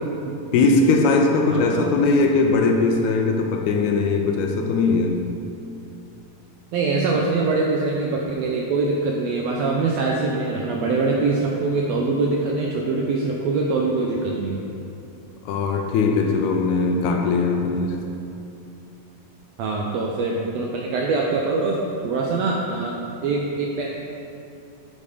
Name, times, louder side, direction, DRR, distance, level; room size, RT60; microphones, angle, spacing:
voice 1, 0.5-5.4 15.5-18.1, left 3 dB, 80° left, 3 dB, 1.8 m, -20 dB
voice 2, 1.5-1.9 6.7-14.6 19.6-21.8 22.0-23.9, right 3 dB, 80° right, -1 dB, 1.5 m, -23 dB
8.5 x 4.2 x 4.9 m, 2.8 s
omnidirectional pair, 3.5 m